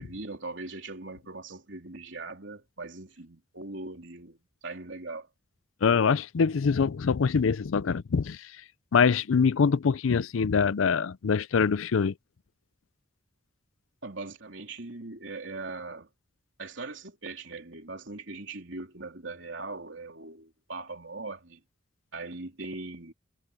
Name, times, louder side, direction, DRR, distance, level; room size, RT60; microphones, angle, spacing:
voice 1, 0.0-4.4 4.6-5.3 14.0-16.1 16.6-21.6 22.1-23.1, right 3 dB, 70° right, 3.3 m, -40 dB
voice 2, 5.8-8.4 8.9-12.1, left 6 dB, 85° left, 0.5 m, -24 dB
head